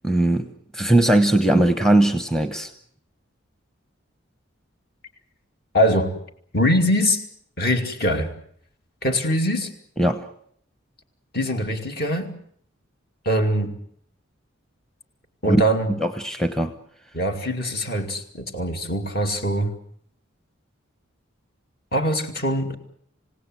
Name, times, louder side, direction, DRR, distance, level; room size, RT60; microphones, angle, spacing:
voice 1, 0.0-0.5 0.7-2.7 10.0-10.3 15.5-15.6 16.0-16.7, right 1 dB, ahead, 9 dB, 0.9 m, -19 dB
voice 2, 5.7-6.1 6.5-7.2 7.6-8.3 9.0-9.7 11.3-12.3 13.2-13.8 15.4-15.9 17.1-19.7 21.9-22.7, equal, 50° left, 5 dB, 2.6 m, -22 dB
28.0 x 17.0 x 7.9 m, 0.65 s
head